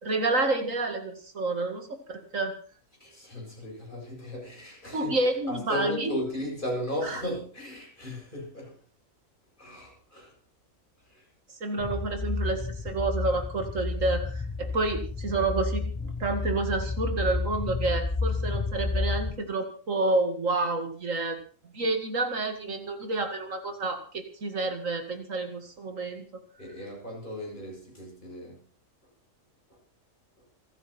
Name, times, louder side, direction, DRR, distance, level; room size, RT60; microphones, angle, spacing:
voice 1, 0.0-2.5 4.9-6.1 7.0-7.2 11.6-21.4 21.7-26.3, right 2 dB, 70° right, 5 dB, 2.5 m, -29 dB
voice 2, 3.0-8.8 9.6-10.3 11.1-11.3 26.6-28.6 29.7-29.8, left 1 dB, 35° left, -1 dB, 7.8 m, -36 dB
sound 1, 11.8-19.4, left 3 dB, 15° left, 0.7 m, -31 dB
27.5 x 9.4 x 4.3 m, 0.41 s
omnidirectional pair, 1.4 m